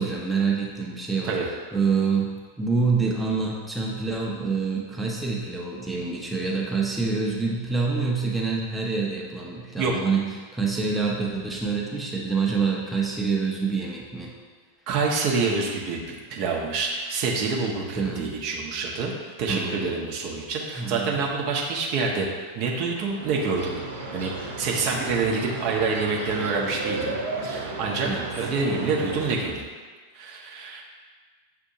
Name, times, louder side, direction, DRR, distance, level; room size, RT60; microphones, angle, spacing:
voice 1, 0.0-1.4 1.7-14.3 18.0-18.3 19.5-19.9 20.8-21.2 28.0-28.3, right 4 dB, 5° right, -3 dB, 0.6 m, -26 dB
voice 2, 14.9-19.1 19.4-22.3 22.5-23.8 24.1-29.6 30.1-30.8, right 4 dB, 45° right, -1 dB, 0.7 m, -27 dB
sound 1, 22.9-29.3, right 2 dB, 65° right, 0.9 m, -34 dB
7.0 x 2.6 x 2.6 m, 1.5 s
figure-of-eight pair, 90°, 0 cm